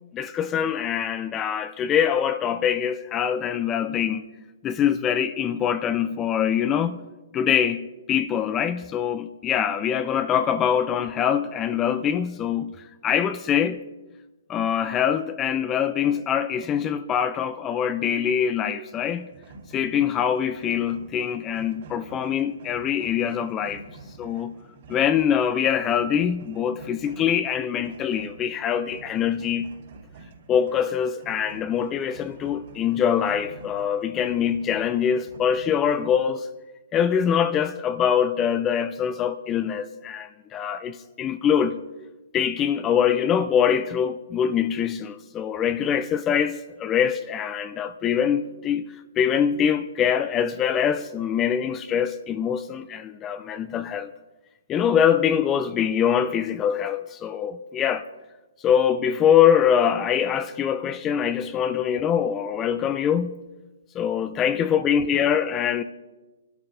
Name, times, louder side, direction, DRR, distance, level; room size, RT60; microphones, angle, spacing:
voice 1, 0.1-4.2 4.6-7.0 7.3-12.7 13.0-13.8 14.5-19.3 19.7-23.8 24.2-24.5 24.9-29.7 30.5-36.5 36.9-41.8 42.3-48.9 49.2-54.1 54.7-58.0 58.6-63.4 64.0-65.8, left 8 dB, 20° left, 0.4 m, -24 dB
sound 1, 19.0-36.2, right 3 dB, 60° right, 3.5 m, -47 dB
26.0 x 12.5 x 2.6 m
hypercardioid pair, 140°, 0 cm